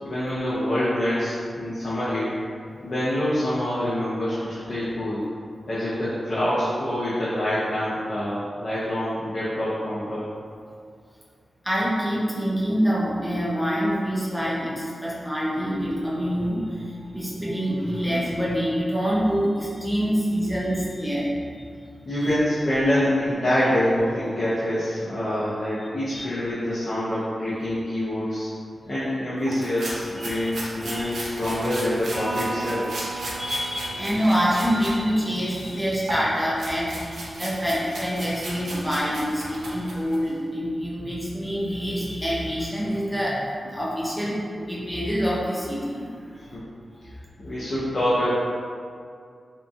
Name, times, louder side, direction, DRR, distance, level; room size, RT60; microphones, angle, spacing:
voice 1, 0.0-2.4 2.8-5.2 5.7-10.2 22.1-28.5 28.9-32.9 46.5-46.6 47.4-48.3, left 1 dB, 45° left, -12 dB, 0.6 m, -26 dB
voice 2, 11.6-21.9 22.1-22.3 26.1-26.3 30.2-30.5 30.8-31.1 33.2-37.0 37.4-46.5, equal, ahead, -7 dB, 0.5 m, -26 dB
sound 1, 29.5-34.9 35.3-40.3, right 1 dB, 85° right, 0.5 m, -36 dB
Electric guitar, 32.1-35.6, right 2 dB, 25° left, 1.4 m, -35 dB
2.8 x 2.3 x 2.5 m, 2.2 s
wide cardioid pair, 145°, 0 cm